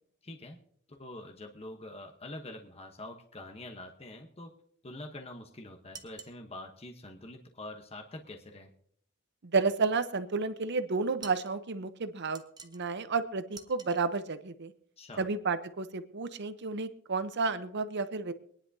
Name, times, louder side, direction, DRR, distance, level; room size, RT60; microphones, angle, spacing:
voice 1, 0.2-0.6 0.9-4.5 4.8-8.7 15.0-15.2, left 1 dB, 30° left, 3 dB, 1.0 m, -45 dB
sound 1, 5.9-6.4 11.2-11.5 12.3-12.9 13.5-14.0, right 5 dB, 20° right, 0.8 m, -48 dB
voice 2, 9.5-14.7 15.2-18.3, right 4 dB, 55° right, 11 dB, 0.8 m, -31 dB
24.0 x 10.0 x 2.7 m, 0.63 s
head